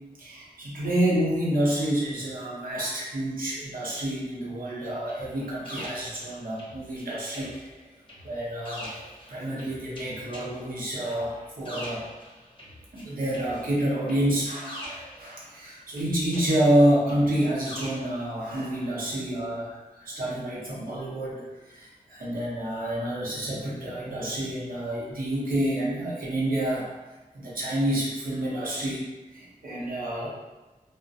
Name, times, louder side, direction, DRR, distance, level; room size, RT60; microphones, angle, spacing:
voice 1, 0.2-7.7 8.2-8.9 9.3-12.0 12.9-26.9 27.3-29.1 29.3-30.3, right 1 dB, 80° right, -6 dB, 0.7 m, -28 dB
sound 1, 5.1-7.0 7.3-13.0 13.3-15.6 16.0-18.2, equal, 35° left, 0.8 m, -43 dB
2.3 x 2.0 x 2.6 m, 1.1 s
wide cardioid pair, 100°, 15 cm